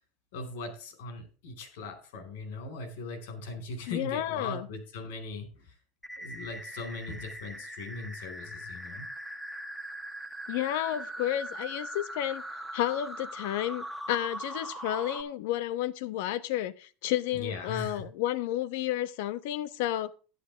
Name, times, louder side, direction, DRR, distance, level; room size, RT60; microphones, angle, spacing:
voice 1, 0.3-5.7 6.2-9.0 17.3-18.1, left 3 dB, 90° left, 4.5 m, -39 dB
voice 2, 3.9-4.7 10.5-12.4 12.7-20.1, left 13 dB, 70° left, 1.0 m, -31 dB
sound 1, 6.0-15.2, right 1 dB, ahead, 1.7 m, -41 dB
11.5 x 11.0 x 3.4 m
supercardioid pair, 160°, 0 cm